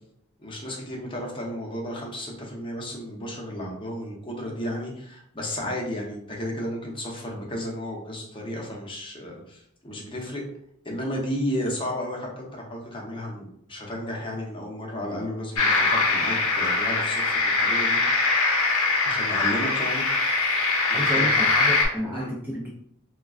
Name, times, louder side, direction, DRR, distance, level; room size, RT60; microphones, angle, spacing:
voice 1, 0.4-10.4 10.8-18.0 19.0-20.1 20.9-21.3 22.1-22.3, equal, 25° left, -1 dB, 0.7 m, -33 dB
sound 1, 15.6-21.9, left 3 dB, 85° left, 0.8 m, -22 dB
voice 2, 20.9-22.7, equal, 10° right, -4 dB, 0.4 m, -31 dB
3.6 x 2.2 x 2.3 m, 0.73 s
head